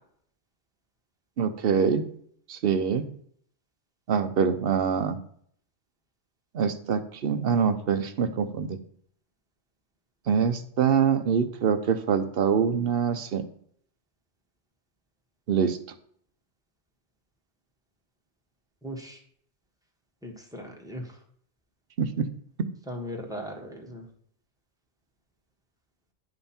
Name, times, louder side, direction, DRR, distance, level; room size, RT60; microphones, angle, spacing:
voice 1, 1.4-2.1 2.5-3.1 4.1-5.2 6.5-8.8 10.3-13.4 15.5-15.8 22.0-22.3, right 6 dB, 55° right, 10 dB, 0.9 m, -24 dB
voice 2, 18.8-19.2 20.2-21.2 22.9-24.1, equal, 5° right, 1 dB, 1.4 m, -38 dB
10.0 x 5.5 x 4.3 m, 0.63 s
omnidirectional pair, 1.2 m